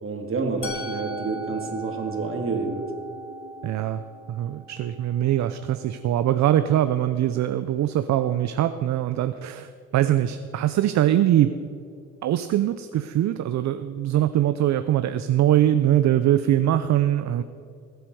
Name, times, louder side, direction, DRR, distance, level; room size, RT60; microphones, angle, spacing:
voice 1, 0.0-2.9, right 4 dB, 45° right, 2 dB, 2.4 m, -28 dB
Musical instrument, 0.6-6.5, equal, 45° left, 2.1 m, -39 dB
voice 2, 3.6-11.5 12.2-17.4, right 12 dB, 65° right, 11 dB, 0.6 m, -22 dB
21.0 x 8.0 x 4.7 m, 2.4 s
cardioid pair, 90°, 30 cm